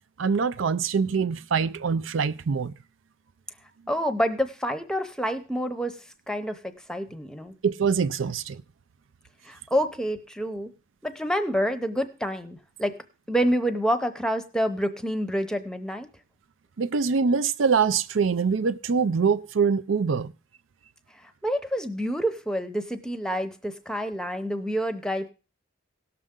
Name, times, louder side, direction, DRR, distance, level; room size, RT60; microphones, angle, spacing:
voice 1, 0.2-2.7 7.6-8.6 16.8-20.3, right 5 dB, 80° right, 0.5 m, -24 dB
voice 2, 3.9-6.0 6.3-7.5 9.4-10.7 11.0-13.0 13.3-16.1 21.2-25.3, equal, 5° left, 0.7 m, -28 dB
17.5 x 6.7 x 3.7 m
head